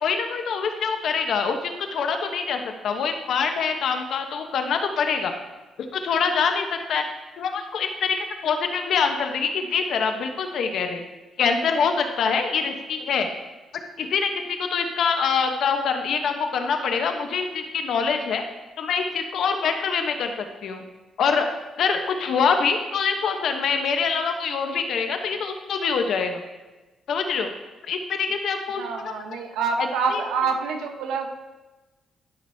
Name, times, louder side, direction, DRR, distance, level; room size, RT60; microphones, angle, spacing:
voice 1, 0.0-5.3 5.9-7.0 7.4-11.0 11.4-13.3 14.0-18.4 18.8-20.8 21.2-21.5 21.8-26.4 27.1-27.5 27.9-29.1 29.8-30.2, left 5 dB, 70° left, 5 dB, 1.0 m, -25 dB
voice 2, 28.8-31.3, right 5 dB, 90° right, 3 dB, 1.0 m, -26 dB
12.5 x 6.0 x 2.8 m, 1.1 s
cardioid pair, 90°, 0 cm